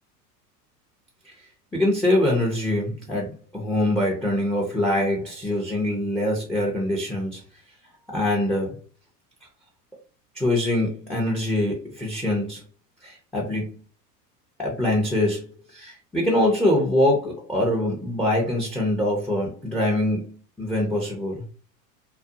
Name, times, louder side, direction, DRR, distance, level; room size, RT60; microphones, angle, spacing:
voice 1, 1.7-7.4 8.1-8.8 10.3-12.6 13.0-13.8 14.6-21.4, left 1 dB, ahead, 0.5 m, -24 dB
2.4 x 2.2 x 2.6 m
hypercardioid pair, 95°, 49 cm